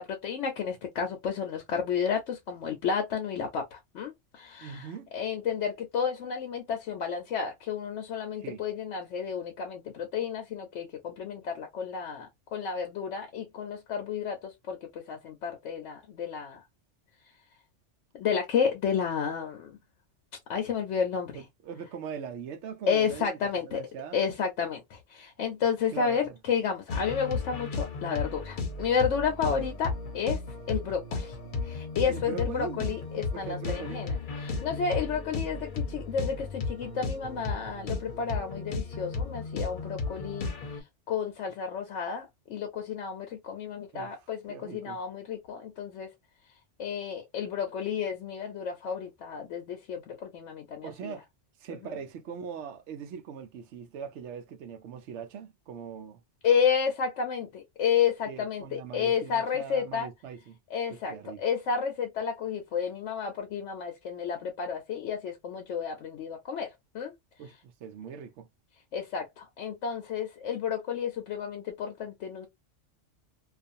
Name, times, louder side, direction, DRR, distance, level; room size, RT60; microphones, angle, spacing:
voice 1, 0.0-4.9 5.1-16.6 18.1-19.8 20.5-21.4 22.9-23.8 24.1-30.4 30.7-31.4 31.6-40.5 40.8-46.1 46.8-51.2 51.8-52.0 56.4-60.1 60.7-67.1 68.9-72.5, left 7 dB, 80° left, 1.0 m, -31 dB
voice 2, 4.6-5.1 8.4-8.6 21.3-24.2 25.9-26.4 29.4-29.7 32.0-33.0 33.3-34.0 43.9-44.2 44.5-45.0 50.8-51.2 51.6-56.2 58.3-60.6 60.9-61.4 67.4-68.5, right 7 dB, 75° right, 0.9 m, -41 dB
sound 1, 26.9-40.8, left 3 dB, 50° left, 0.8 m, -34 dB
2.4 x 2.4 x 2.5 m
omnidirectional pair, 1.3 m